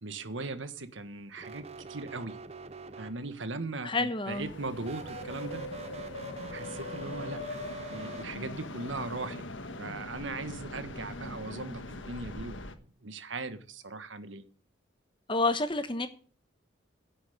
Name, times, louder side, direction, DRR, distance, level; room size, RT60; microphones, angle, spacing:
voice 1, 0.0-2.4 3.0-5.6 6.5-7.6 7.9-9.5 9.8-12.6 13.0-14.4, right 3 dB, 75° right, 11 dB, 1.5 m, -39 dB
sound 1, 1.4-3.5 4.8-8.2, right 4 dB, 30° right, 0.6 m, -45 dB
voice 2, 3.8-4.5 15.3-16.1, left 3 dB, 25° left, 10 dB, 1.2 m, -29 dB
sound 2, 4.3-12.7, left 2 dB, 75° left, 1.5 m, -41 dB
11.0 x 7.1 x 9.3 m, 0.41 s
head